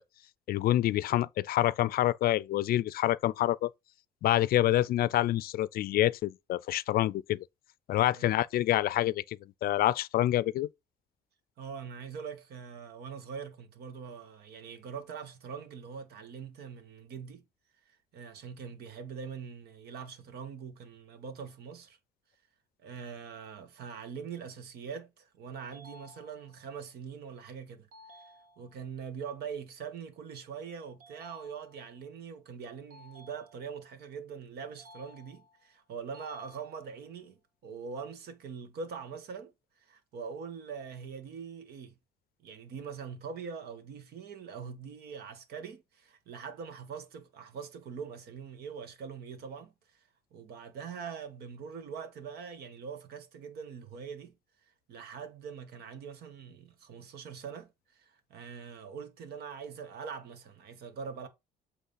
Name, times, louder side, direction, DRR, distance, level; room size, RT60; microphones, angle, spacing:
voice 1, 0.5-3.7 4.2-7.4 7.9-10.7, left 14 dB, 60° left, 0.5 m, -27 dB
voice 2, 11.6-17.4 17.8-22.0 22.8-27.9 28.6-39.5 39.8-41.9 42.4-50.0 50.3-54.3 54.9-61.3, right 6 dB, 70° right, 1.7 m, -43 dB
sound 1, 25.7-26.7 27.9-28.9 31.0-32.0 32.9-34.0 34.8-35.7 36.1-37.1, left 1 dB, 55° right, 1.9 m, -55 dB
8.2 x 3.2 x 5.7 m
cardioid pair, 110°, 17 cm